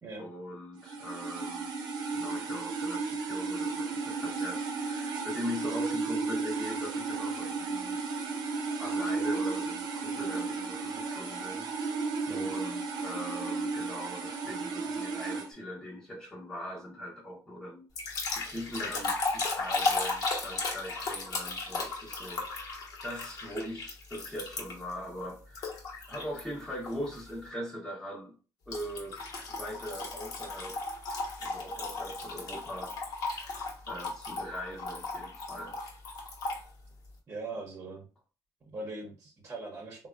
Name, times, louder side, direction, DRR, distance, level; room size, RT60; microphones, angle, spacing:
voice 1, 0.2-1.7 2.1-8.0 8.8-17.9 18.4-25.8 26.1-28.3 28.7-29.2 29.5-30.9 31.4-33.0 33.9-35.8, equal, 5° left, 0.8 m, -41 dB
sound 1, 0.8-15.5, right 4 dB, 80° right, 0.6 m, -34 dB
sound 2, 18.0-24.9 25.6-26.4 26.9-27.2 28.7-36.6, left 3 dB, 60° left, 0.9 m, -35 dB
voice 2, 37.3-38.1 38.6-40.1, right 2 dB, 30° right, 0.8 m, -41 dB
3.4 x 2.1 x 2.3 m
cardioid pair, 110°, 7 cm